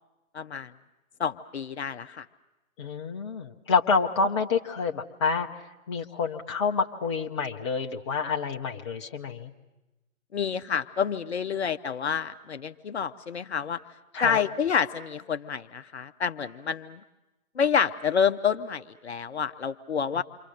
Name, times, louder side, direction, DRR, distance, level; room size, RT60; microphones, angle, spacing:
voice 1, 0.3-0.7 1.2-2.3 10.3-13.8 14.2-17.0 17.6-20.2, left 7 dB, 50° left, 9 dB, 0.7 m, -28 dB
voice 2, 2.8-9.5 14.1-14.4 20.1-20.2, left 5 dB, 20° left, 1 dB, 0.7 m, -28 dB
28.0 x 24.5 x 6.5 m, 1.0 s
figure-of-eight pair, 140°, 42 cm